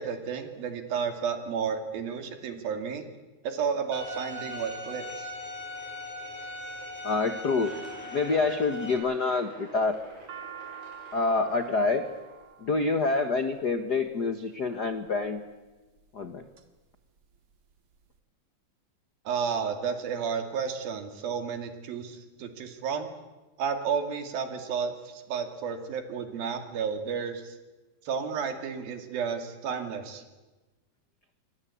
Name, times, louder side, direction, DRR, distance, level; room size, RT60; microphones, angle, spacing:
voice 1, 0.0-3.0 3.4-5.3 19.3-23.1 23.6-27.6 28.1-30.2, right 6 dB, 90° right, 7 dB, 4.2 m, -32 dB
Bowed string instrument, 3.9-8.9, left 1 dB, 10° left, 4.4 m, -39 dB
voice 2, 7.0-7.7 8.1-10.0 11.1-12.0 12.6-15.4 16.1-16.4, left 3 dB, 70° left, 9 dB, 0.9 m, -27 dB
sound 1, 7.6-12.6, right 1 dB, 70° right, 9.0 m, -50 dB
sound 2, 9.8-14.1 14.9-15.4 16.0-16.6 17.0-17.1 17.2-18.1, right 8 dB, 45° right, 2.5 m, -46 dB
27.5 x 23.0 x 8.5 m, 1.2 s
omnidirectional pair, 4.0 m